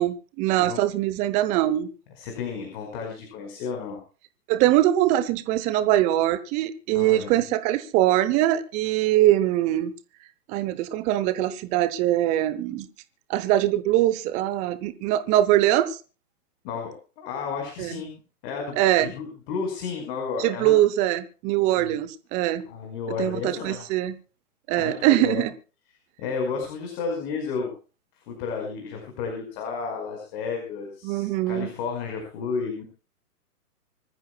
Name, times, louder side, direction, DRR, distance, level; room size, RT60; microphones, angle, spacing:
voice 1, 0.0-1.9 4.5-9.9 10.5-12.9 13.3-16.0 17.8-18.0 18.8-19.1 20.4-22.6 23.2-24.2 24.7-25.5 31.0-31.7, right 14 dB, 15° right, 14 dB, 0.7 m, -22 dB
voice 2, 2.2-4.0 6.9-7.4 16.6-20.8 21.7-22.0 22.7-23.9 24.8-25.4 26.2-27.7 28.2-32.8, left 5 dB, 35° left, 2 dB, 5.2 m, -32 dB
25.0 x 14.5 x 2.3 m, 0.35 s
hypercardioid pair, 130°, 47 cm